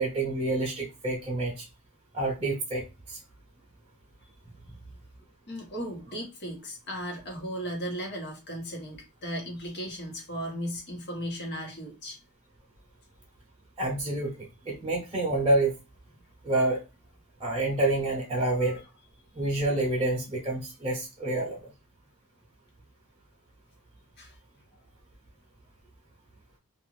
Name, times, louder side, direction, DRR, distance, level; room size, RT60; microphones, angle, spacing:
voice 1, 0.0-1.6 2.1-3.2 13.8-15.7 16.4-16.8 17.4-18.8 19.3-21.7, right 2 dB, 25° right, -3 dB, 0.7 m, -28 dB
voice 2, 5.5-12.2 18.6-18.8 24.2-24.4, equal, 50° left, 1 dB, 1.1 m, -36 dB
2.5 x 2.5 x 3.1 m, 0.28 s
head